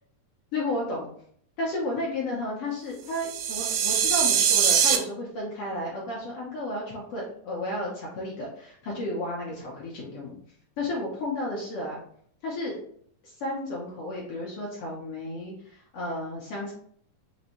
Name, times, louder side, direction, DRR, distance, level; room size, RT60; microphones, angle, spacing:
voice 1, 0.5-1.1 1.6-10.4 10.8-12.0 12.4-12.8 13.2-16.7, left 1 dB, 70° left, -4 dB, 1.4 m, -32 dB
sound 1, 3.1-5.0, right 8 dB, 90° right, 2.2 m, -22 dB
5.1 x 2.6 x 2.9 m, 0.62 s
omnidirectional pair, 3.5 m